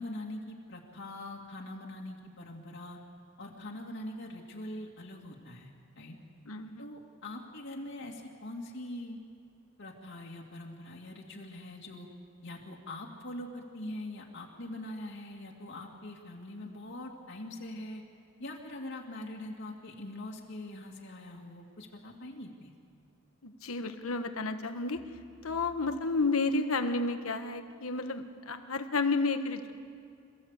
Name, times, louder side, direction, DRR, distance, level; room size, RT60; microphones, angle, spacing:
voice 1, 0.0-3.0 3.4-6.2 6.8-9.2 9.8-12.1 12.4-18.0 18.4-22.7, left 1 dB, 60° left, -1 dB, 2.3 m, -43 dB
voice 2, 6.4-6.9 23.4-25.0 25.4-29.7, left 3 dB, 90° left, 8 dB, 1.4 m, -31 dB
27.0 x 15.0 x 8.2 m, 2.3 s
head